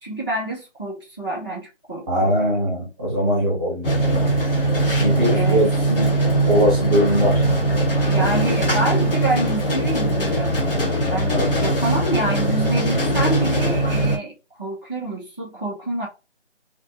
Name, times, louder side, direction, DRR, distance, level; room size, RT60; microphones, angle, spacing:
voice 1, 0.0-2.5 5.1-5.6 8.0-10.6 11.1-14.3 14.6-16.1, right 1 dB, 20° left, 0.7 m, -27 dB
voice 2, 2.1-4.3 5.0-6.1 6.5-7.4 11.3-11.7, equal, 5° right, 0.9 m, -21 dB
sound 1, 3.8-14.2, right 1 dB, 50° left, 1.0 m, -20 dB
2.5 x 2.2 x 3.6 m
figure-of-eight pair, 160°, 35 cm